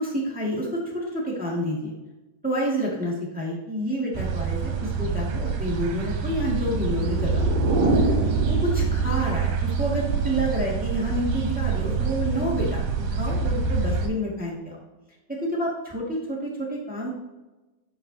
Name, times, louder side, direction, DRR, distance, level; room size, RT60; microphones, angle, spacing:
voice 1, 0.0-1.9 2.4-14.8 15.3-17.1, equal, 5° right, -4 dB, 1.3 m, -29 dB
sound 1, 4.1-14.1, right 5 dB, 80° right, 2.7 m, -26 dB
sound 2, 6.7-9.4, right 2 dB, 60° right, 1.8 m, -27 dB
10.5 x 5.9 x 2.9 m, 1.1 s
omnidirectional pair, 3.8 m